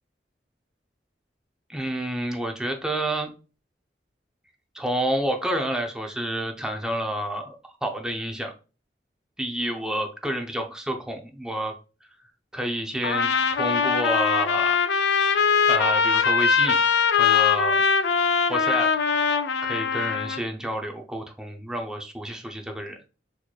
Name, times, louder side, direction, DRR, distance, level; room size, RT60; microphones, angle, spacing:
voice 1, 1.7-3.3 4.7-8.5 9.4-11.7 12.5-14.8 15.7-16.8 17.2-17.8 18.5-18.9 19.6-23.0, right 1 dB, 5° right, 3 dB, 0.5 m, -29 dB
Trumpet, 13.0-20.4, left 6 dB, 70° left, 0.4 m, -22 dB
4.0 x 3.0 x 2.2 m, 0.34 s
head